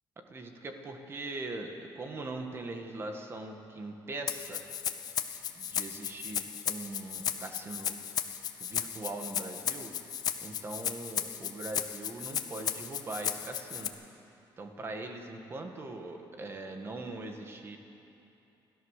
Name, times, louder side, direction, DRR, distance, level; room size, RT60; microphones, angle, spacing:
voice 1, 0.3-4.6 5.6-7.9 8.6-9.9 10.4-13.9 14.6-17.8, right 2 dB, 30° right, 4 dB, 1.6 m, -41 dB
Rattle (instrument), 4.3-13.9, left 9 dB, 50° left, 0.9 m, -35 dB
29.5 x 13.5 x 6.6 m, 2.9 s
cardioid pair, 175°, 8 cm